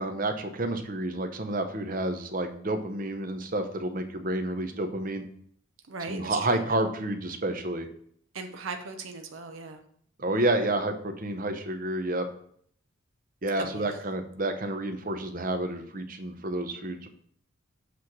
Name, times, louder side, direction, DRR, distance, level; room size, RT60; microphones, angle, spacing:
voice 1, 0.0-5.2 6.1-7.9 10.2-12.3 13.4-17.1, right 1 dB, 40° right, 6 dB, 0.8 m, -30 dB
voice 2, 5.9-6.8 8.3-9.8 13.6-14.0, right 4 dB, 70° right, 6 dB, 0.7 m, -38 dB
8.2 x 3.2 x 5.9 m, 0.62 s
head